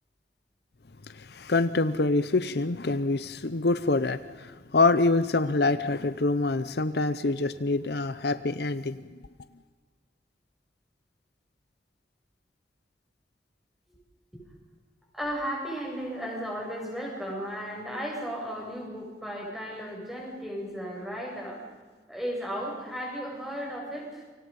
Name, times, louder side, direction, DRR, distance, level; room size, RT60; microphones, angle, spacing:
voice 1, 1.1-9.0, left 3 dB, 60° left, 0.8 m, -26 dB
voice 2, 15.1-21.6 22.1-24.2, equal, ahead, 7.5 m, -35 dB
29.0 x 25.5 x 5.5 m
head